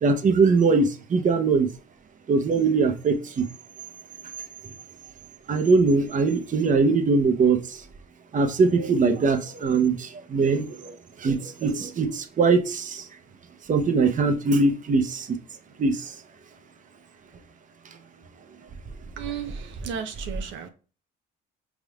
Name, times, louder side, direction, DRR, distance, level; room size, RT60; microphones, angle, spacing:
voice 1, 0.0-1.7 2.3-3.5 5.5-7.8 8.3-13.1 13.7-15.4 15.8-16.2, right 4 dB, 40° right, 0.8 m, -22 dB
voice 2, 19.2-20.7, right 8 dB, 70° right, 0.6 m, -34 dB
4.9 x 3.5 x 2.3 m
supercardioid pair, 75°, 21 cm